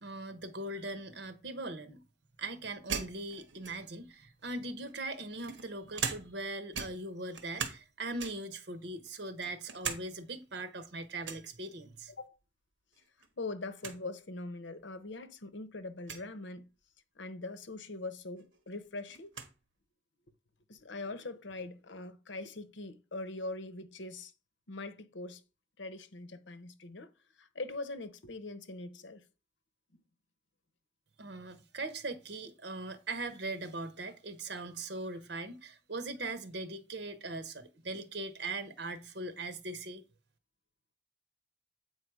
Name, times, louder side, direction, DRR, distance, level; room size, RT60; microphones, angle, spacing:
voice 1, 0.0-2.0 2.4-12.1 31.2-40.0, right 2 dB, 65° right, 0.9 m, -40 dB
sound 1, 2.9-4.1 4.9-6.5 6.7-7.9 8.2-8.6 9.1-10.0 10.4-10.5 11.2-11.5 12.9-13.3 13.5-13.6 13.8-14.0 14.8-14.9 16.0-16.3 17.9-18.0 18.4-19.5, right 6 dB, 90° right, 1.2 m, -40 dB
voice 2, 13.4-16.6 17.1-19.3 20.7-24.3 24.7-25.4 25.8-27.1 27.4-29.2, left 2 dB, 80° left, 0.9 m, -42 dB
8.3 x 4.7 x 4.8 m
head